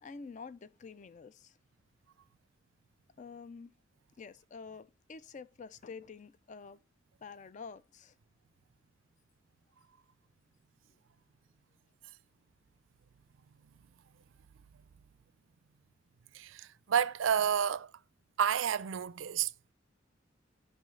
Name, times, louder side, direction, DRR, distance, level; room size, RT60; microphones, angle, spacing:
voice 1, 0.0-1.5 3.2-3.7 4.2-6.8 7.2-8.1, left 5 dB, 40° left, 0.4 m, -48 dB
voice 2, 16.3-17.9 18.4-19.7, right 8 dB, 85° right, 0.4 m, -30 dB
16.0 x 5.6 x 3.2 m
head